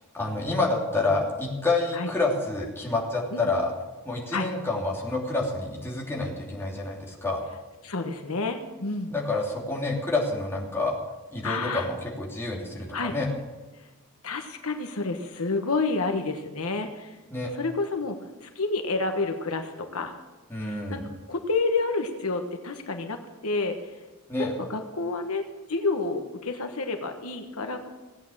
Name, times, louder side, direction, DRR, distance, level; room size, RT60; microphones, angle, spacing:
voice 1, 0.1-3.7 4.0-7.4 9.1-11.0 11.3-13.3 17.3-17.5 20.5-21.0 24.3-24.5, left 2 dB, 10° left, -3 dB, 2.9 m, -28 dB
voice 2, 7.8-9.1 11.4-11.9 12.9-13.1 13.7-13.9 14.2-17.2 17.5-20.1 20.6-21.0 21.3-24.0 24.4-25.4 25.7-27.9, left 3 dB, 80° left, 6 dB, 1.3 m, -29 dB
17.0 x 8.7 x 7.3 m, 1.1 s
head